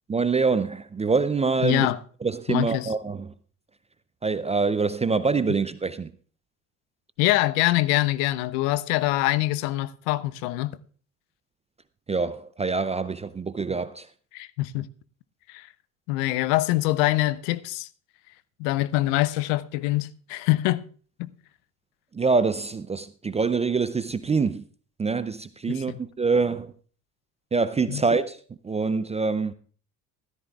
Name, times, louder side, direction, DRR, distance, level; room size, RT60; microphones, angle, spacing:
voice 1, 0.1-1.9 2.2-3.3 4.2-6.1 12.1-14.1 22.1-24.6 25.0-26.7 27.5-29.5, right 4 dB, 15° right, 0.4 m, -25 dB
voice 2, 1.6-2.0 2.5-2.9 7.2-10.8 14.3-14.9 15.5-15.7 16.1-17.9 18.6-20.8 21.2-21.3 25.7-26.0 27.9-28.0, left 17 dB, 65° left, 0.7 m, -24 dB
16.0 x 13.5 x 2.4 m
hypercardioid pair, 60°, 47 cm